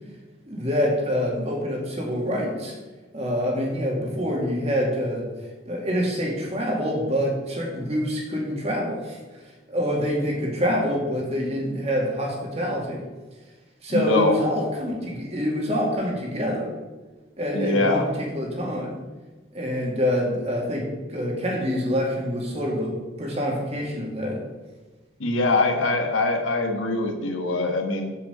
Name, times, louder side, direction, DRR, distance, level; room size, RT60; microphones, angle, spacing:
voice 1, 0.5-2.7 3.1-5.3 5.7-9.2 9.7-13.0 13.8-16.7 17.4-19.0 19.5-24.4, equal, 30° right, -1 dB, 2.2 m, -26 dB
voice 2, 13.9-14.4 17.5-18.1 25.2-28.2, left 2 dB, 85° left, 4 dB, 1.4 m, -23 dB
7.4 x 6.9 x 6.7 m, 1.3 s
head